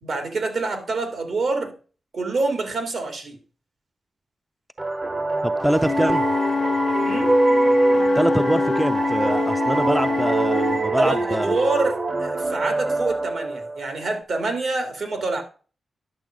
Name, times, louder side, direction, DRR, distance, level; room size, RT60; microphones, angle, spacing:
voice 1, 0.0-1.7 2.1-3.4 7.0-7.3 11.0-15.4, right 3 dB, 65° right, 2.4 m, -26 dB
sound 1, 4.8-14.2, right 2 dB, 30° right, 1.0 m, -24 dB
voice 2, 5.4-6.2 8.1-11.6, right 1 dB, 5° right, 0.5 m, -24 dB
Wind instrument woodwind instrument, 5.8-10.8, left 5 dB, 60° left, 0.4 m, -25 dB
10.5 x 7.1 x 5.1 m
wide cardioid pair, 95°, 0 cm